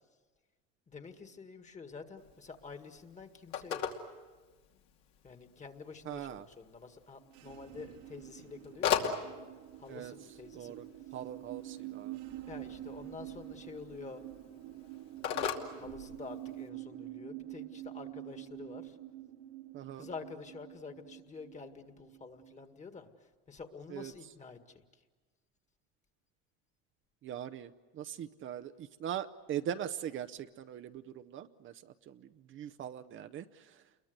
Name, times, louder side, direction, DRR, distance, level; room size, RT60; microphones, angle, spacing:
voice 1, 0.9-3.9 5.2-9.1 9.8-10.8 12.5-14.2 15.7-19.0 19.9-23.1 23.5-24.8, left 4 dB, 25° left, 8 dB, 1.9 m, -48 dB
Telephone, 2.2-16.7, left 8 dB, 70° left, 2.6 m, -41 dB
voice 2, 6.0-6.5 9.9-10.1 10.5-10.8 11.1-12.2 19.7-20.1 23.9-24.1 27.2-33.8, right 10 dB, 45° right, 8 dB, 0.8 m, -41 dB
sound 1, 7.2-22.7, right 15 dB, 85° right, 2.4 m, -47 dB
29.0 x 22.0 x 8.0 m, 1.3 s
supercardioid pair, 115°, 29 cm